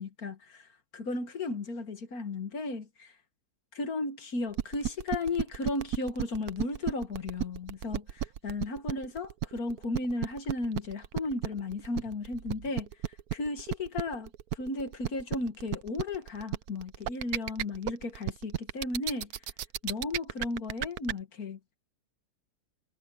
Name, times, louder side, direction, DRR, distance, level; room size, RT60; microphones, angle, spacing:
voice 1, 0.0-3.2 3.7-12.9 13.3-19.3 19.8-21.6, left 3 dB, 60° left, 2.2 m, -35 dB
sound 1, 4.5-21.1, right 11 dB, 70° right, 1.2 m, -32 dB
omnidirectional pair, 1.8 m